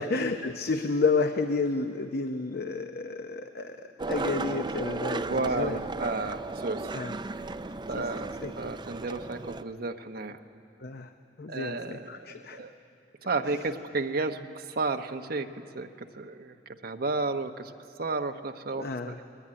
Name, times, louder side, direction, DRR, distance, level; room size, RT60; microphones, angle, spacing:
voice 1, 0.0-5.8 6.9-7.1 7.9-8.1 8.4-8.7 10.8-11.1 11.4-12.6 13.5-13.6 18.8-19.2, left 4 dB, 55° left, 7 dB, 0.8 m, -31 dB
Skateboard, 4.0-9.6, right 3 dB, 25° right, 0.5 m, -35 dB
voice 2, 5.2-6.9 7.9-8.3 8.6-10.4 11.5-12.7 13.2-15.5 15.7-15.9 16.2-16.5 16.8-17.7 18.0-19.1, right 3 dB, 55° right, 6 dB, 1.0 m, -32 dB
21.5 x 18.5 x 9.9 m, 2.7 s
head